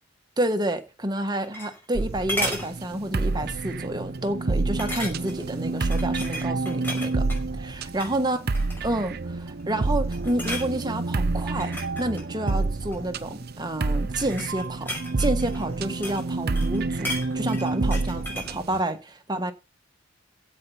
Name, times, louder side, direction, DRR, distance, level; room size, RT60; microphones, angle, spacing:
voice 1, 0.4-7.3 7.6-8.4 8.8-19.5, right 1 dB, 20° right, 1.5 m, -29 dB
sound 1, 1.1-2.0 2.3-2.7 3.2-3.4 3.8-3.9 4.8-5.4 5.8-7.4 7.9-8.2 8.5-9.1 9.6-9.9 10.1-10.7 11.4-13.1 13.9-16.3 16.6-18.6 18.9-19.0, left 1 dB, 10° left, 5.4 m, -34 dB
sound 2, 2.0-18.8, right 3 dB, 55° right, 0.7 m, -28 dB
15.5 x 5.5 x 7.3 m
head